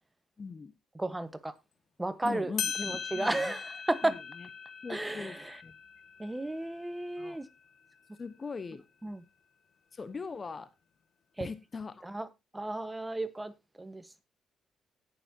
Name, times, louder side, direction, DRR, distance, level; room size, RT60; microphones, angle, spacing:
voice 1, 0.4-0.7 2.2-3.5 4.0-4.5 4.8-5.4 5.6-5.7 7.2-7.4 8.2-8.8 9.9-10.7 11.4-12.1, left 4 dB, 35° left, 1.0 m, -40 dB
voice 2, 1.0-1.5 2.0-2.5 2.8-3.6 3.9-4.1 4.9-5.6 6.2-7.5 9.0-9.2 11.4-11.5 12.0-12.3 12.5-13.5 13.8-14.0, right 2 dB, 15° right, 1.2 m, -33 dB
sound 1, 2.3-2.4 2.6-7.7, left 6 dB, 65° left, 1.8 m, -40 dB
18.0 x 7.0 x 2.8 m
cardioid pair, 90°, 0 cm